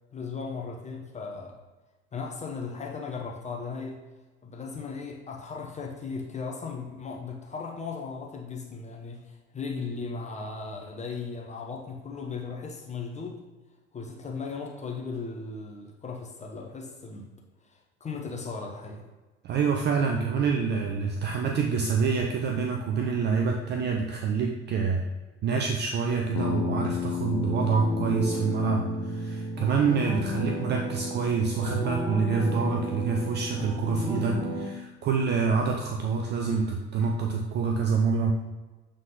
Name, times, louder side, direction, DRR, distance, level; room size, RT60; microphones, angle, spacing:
voice 1, 0.1-1.6 2.1-4.0 4.4-13.4 13.9-17.3 17.7-19.1, left 4 dB, 20° left, 0 dB, 0.9 m, -37 dB
voice 2, 19.4-25.0 25.4-38.3, right 5 dB, 30° right, 2 dB, 0.6 m, -27 dB
Bass guitar, 26.3-30.6, left 8 dB, 55° left, 0.7 m, -34 dB
sound 1, 27.3-34.6, right 1 dB, 5° right, 1.7 m, -33 dB
7.2 x 3.9 x 3.8 m, 1.2 s
figure-of-eight pair, 70°, 35 cm